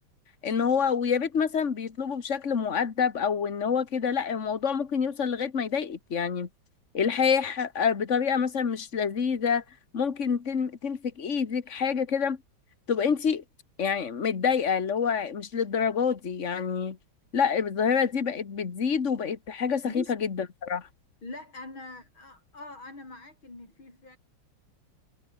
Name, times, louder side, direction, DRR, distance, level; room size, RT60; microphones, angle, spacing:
voice 1, 0.4-6.5 6.9-9.6 9.9-12.4 12.9-13.4 13.8-17.0 17.3-20.9, left 6 dB, 40° left, 2.0 m, -27 dB
voice 2, 21.2-24.2, left 2 dB, 90° left, 8.4 m, -43 dB
omnidirectional pair, 2.1 m